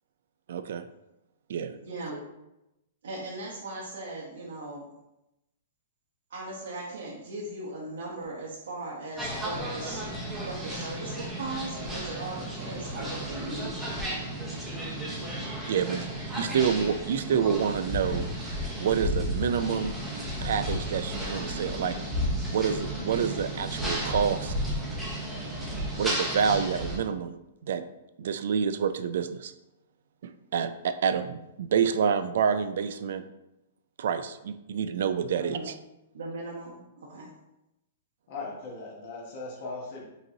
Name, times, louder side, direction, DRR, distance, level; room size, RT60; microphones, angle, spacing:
voice 1, 0.5-0.8 1.5-1.7 15.7-16.1 16.3-18.2 18.8-19.9 20.4-22.0 22.5-24.5 25.9-27.8 28.2-29.5 30.2-33.2 34.0-35.7, right 7 dB, 65° right, 11 dB, 0.3 m, -28 dB
voice 2, 1.8-2.2 3.0-4.9 6.3-10.0 10.3-13.9 35.4-35.7 36.1-37.3, right 2 dB, 90° right, -5 dB, 1.0 m, -38 dB
sound 1, 9.2-27.0, equal, 5° right, 0.8 m, -33 dB
voice 3, 38.3-40.0, left 3 dB, 45° left, -1 dB, 1.1 m, -38 dB
5.2 x 3.0 x 2.7 m, 0.92 s
hypercardioid pair, 160°, 0 cm